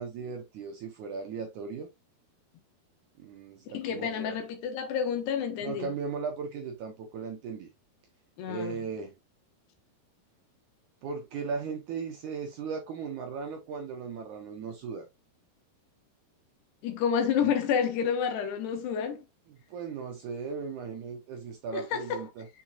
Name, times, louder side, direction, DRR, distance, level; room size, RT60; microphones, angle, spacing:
voice 1, 0.0-1.9 3.2-4.4 5.6-7.7 8.5-9.1 11.0-15.1 17.4-17.5 19.5-22.5, right 5 dB, 75° right, 1.8 m, -37 dB
voice 2, 3.7-5.9 8.4-8.8 16.8-19.2 21.7-22.2, left 7 dB, 90° left, 3.6 m, -29 dB
7.3 x 5.8 x 2.5 m
omnidirectional pair, 4.6 m